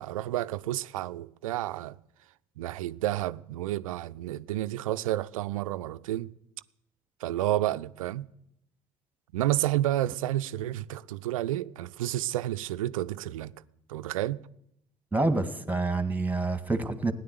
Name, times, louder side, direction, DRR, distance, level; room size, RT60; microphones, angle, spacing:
voice 1, 0.0-2.0 2.6-6.3 7.2-8.3 9.3-13.5 13.9-14.4, right 14 dB, 70° right, 0.5 m, -30 dB
voice 2, 15.1-17.1, right 3 dB, 10° right, 1.8 m, -27 dB
17.5 x 10.0 x 8.0 m
figure-of-eight pair, 55°, 18 cm